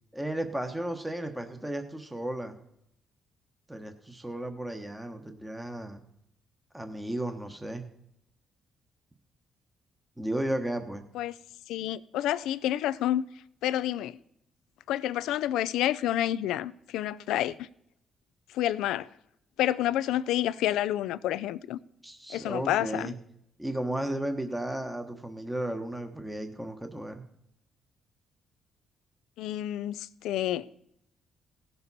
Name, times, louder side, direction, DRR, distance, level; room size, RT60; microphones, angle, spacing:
voice 1, 0.1-2.6 3.7-6.0 6.7-7.8 10.2-11.0 22.0-23.1 23.6-27.3, right 1 dB, 10° right, 1.2 m, -34 dB
voice 2, 11.7-13.2 13.6-14.2 14.9-17.7 18.5-19.1 19.6-21.8 22.3-23.1 29.4-30.7, left 12 dB, 90° left, 0.4 m, -29 dB
17.0 x 6.8 x 4.1 m
cardioid pair, 90°, 0 cm